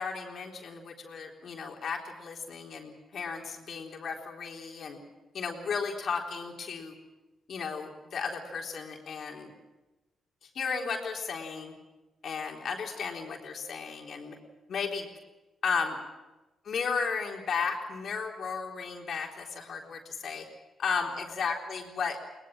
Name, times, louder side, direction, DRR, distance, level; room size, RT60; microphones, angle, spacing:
voice 1, 0.0-5.0 5.3-7.0 7.5-9.5 10.4-11.7 12.2-14.4 14.7-15.1 15.6-16.0 16.7-20.5 20.8-22.2, left 5 dB, 65° left, 1 dB, 3.8 m, -34 dB
21.5 x 20.0 x 7.5 m, 1.1 s
supercardioid pair, 55°, 0 cm